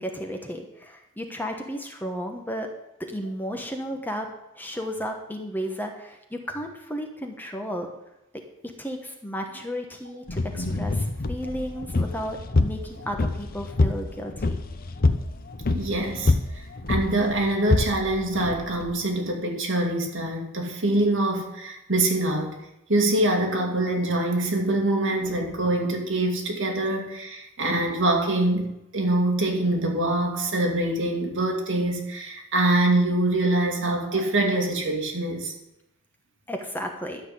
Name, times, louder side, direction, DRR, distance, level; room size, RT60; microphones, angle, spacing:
voice 1, 0.0-2.7 3.0-4.3 4.6-7.9 8.8-14.6 36.5-37.2, equal, 10° left, 3 dB, 1.1 m, -33 dB
sound 1, 10.3-18.9, left 2 dB, 40° left, 0.7 m, -26 dB
voice 2, 15.7-16.3 16.9-22.6 22.9-35.5, right 1 dB, 60° right, 1 dB, 2.5 m, -24 dB
12.0 x 5.9 x 8.3 m, 0.86 s
head